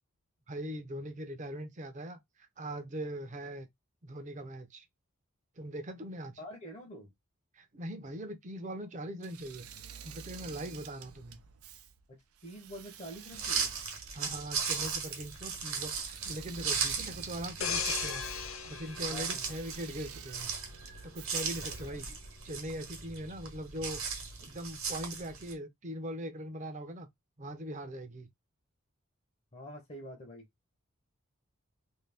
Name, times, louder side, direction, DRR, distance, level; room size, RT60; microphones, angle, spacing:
voice 1, 0.5-3.7 4.0-4.9 5.6-6.4 7.5-9.7 10.0-11.4 14.1-18.2 18.7-20.5 21.0-22.1 22.4-24.0 24.4-27.1 27.4-28.3, right 1 dB, 35° right, 0.6 m, -41 dB
voice 2, 6.4-7.1 12.1-13.8 19.1-19.5 21.9-22.0 29.5-30.5, equal, 30° left, 0.7 m, -46 dB
Engine / Mechanisms, 9.2-22.1, right 8 dB, 90° right, 0.6 m, -50 dB
sound 1, 13.3-25.5, right 5 dB, 70° right, 1.1 m, -37 dB
sound 2, 17.6-20.3 20.7-21.0, left 7 dB, 65° left, 0.6 m, -37 dB
2.7 x 2.6 x 3.3 m
head